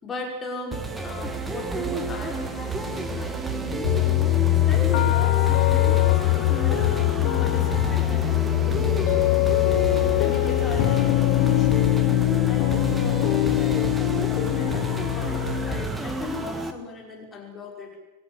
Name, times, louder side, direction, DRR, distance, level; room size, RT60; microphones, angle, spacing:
voice 1, 0.0-3.9 4.5-6.9 7.4-9.7 10.2-12.0 12.5-18.0, left 2 dB, 20° left, 0 dB, 5.8 m, -37 dB
sound 1, 0.7-16.7, right 2 dB, 15° right, 2.1 m, -30 dB
sound 2, 3.8-15.9, left 23 dB, 50° left, 0.9 m, -22 dB
sound 3, 12.0-15.8, right 3 dB, 40° right, 4.0 m, -47 dB
25.5 x 15.0 x 9.0 m, 1.2 s
figure-of-eight pair, 90°, 0 cm